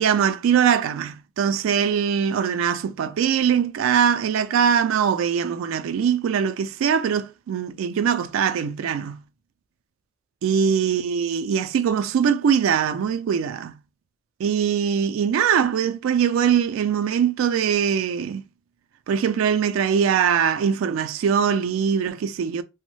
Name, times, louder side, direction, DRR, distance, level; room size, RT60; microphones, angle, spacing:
voice 1, 0.0-9.2 10.4-13.7 14.4-18.4 19.1-22.6, right 7 dB, 90° right, 0.3 m, -22 dB
3.0 x 2.0 x 3.0 m
head